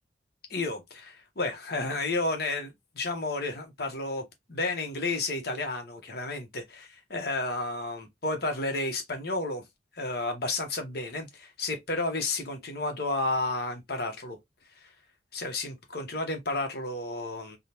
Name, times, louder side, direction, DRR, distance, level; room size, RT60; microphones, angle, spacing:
voice 1, 0.5-9.6 9.9-14.4 14.7-14.9 15.3-17.6, left 2 dB, 55° left, 1.1 m, -32 dB
3.6 x 2.3 x 2.9 m
head